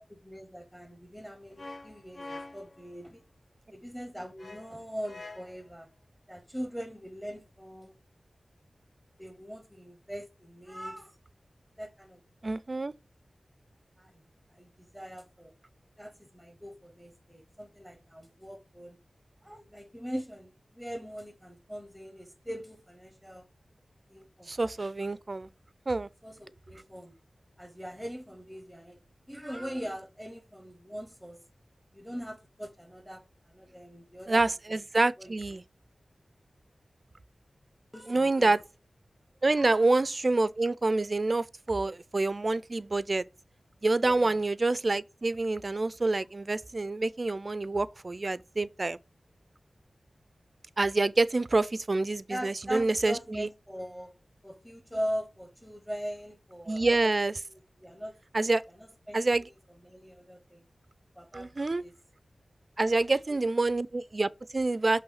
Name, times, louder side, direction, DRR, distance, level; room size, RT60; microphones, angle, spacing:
voice 1, 0.0-3.2 3.7-5.9 6.3-7.9 9.2-11.1 11.8-12.2 14.0-14.2 14.6-15.5 16.0-19.0 19.4-23.5 24.1-24.5 26.2-27.1 27.6-29.0 29.3-31.4 31.9-34.8 35.2-35.3 37.9-38.6 39.5-39.9 44.0-44.4 52.3-54.1 54.4-57.1 57.5-58.2 58.8-59.4 59.8-60.7 61.2-61.9 63.3-63.4, equal, ahead, 0.9 m, -41 dB
sound 1, 1.6-2.9 4.4-5.7, left 2 dB, 70° left, 1.4 m, -45 dB
voice 2, 12.4-12.9 24.5-25.5 25.9-26.1 34.3-35.6 38.1-38.6 39.4-43.2 43.8-49.0 50.8-53.5 56.7-57.3 58.3-58.6 59.1-59.5 61.3-61.8 62.8-65.0, right 2 dB, 45° right, 0.4 m, -27 dB
6.9 x 3.1 x 5.5 m
wide cardioid pair, 85°, 0 cm